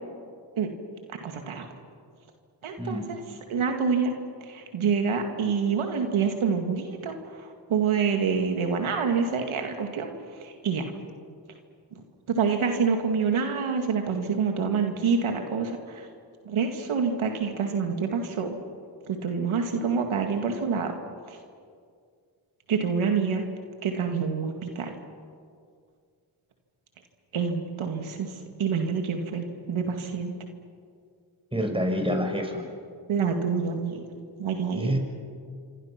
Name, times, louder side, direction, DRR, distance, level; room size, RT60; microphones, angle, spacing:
voice 1, 1.2-1.7 2.6-3.2 3.5-4.1 4.4-10.1 10.4-10.9 12.0-16.1 16.5-18.6 19.1-20.9 21.3-21.4 22.7-23.4 23.8-24.9 27.3-28.3 28.6-30.3 33.1-34.0 34.4-35.0, right 5 dB, 85° right, 4 dB, 2.2 m, -27 dB
voice 2, 31.5-32.6 34.7-35.0, equal, 10° right, 4 dB, 5.6 m, -27 dB
27.0 x 25.5 x 6.0 m, 2.2 s
cardioid pair, 55°, 48 cm